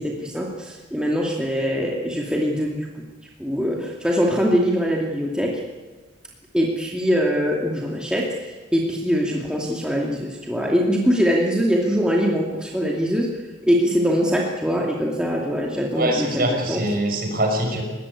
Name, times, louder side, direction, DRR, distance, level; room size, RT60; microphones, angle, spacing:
voice 1, 0.0-2.9 3.4-5.6 6.5-13.3 13.7-16.8, equal, 5° right, -2 dB, 2.5 m, -22 dB
voice 2, 16.0-17.8, right 1 dB, 45° right, 2 dB, 6.0 m, -23 dB
22.5 x 18.0 x 9.9 m, 1.3 s
head